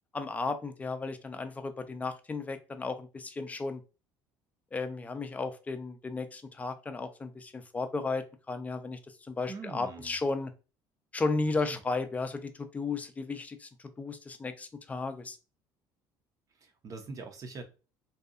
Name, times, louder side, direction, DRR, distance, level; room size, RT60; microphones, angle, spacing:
voice 1, 0.1-3.8 4.7-10.5 11.1-15.4, left 3 dB, 15° left, 9 dB, 0.4 m, -34 dB
voice 2, 9.5-10.2 11.7-11.8 16.5-17.6, right 4 dB, 40° right, 4 dB, 0.6 m, -43 dB
2.7 x 2.3 x 2.4 m, 0.32 s
supercardioid pair, 95°, 9 cm